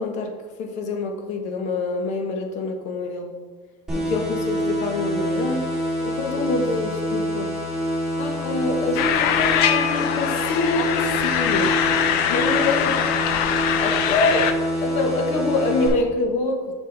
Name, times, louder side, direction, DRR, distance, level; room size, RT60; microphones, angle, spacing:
voice 1, 0.0-3.4 3.9-5.7 6.0-7.6 8.2-12.0 12.3-12.9 13.8-16.7, left 3 dB, 45° left, 5 dB, 1.0 m, -26 dB
sound 1, 3.9-15.9, equal, 5° right, 2.4 m, -27 dB
sound 2, 9.0-14.5, left 9 dB, 70° left, 0.6 m, -22 dB
7.3 x 6.4 x 3.9 m, 1.4 s
cardioid pair, 180°, 16 cm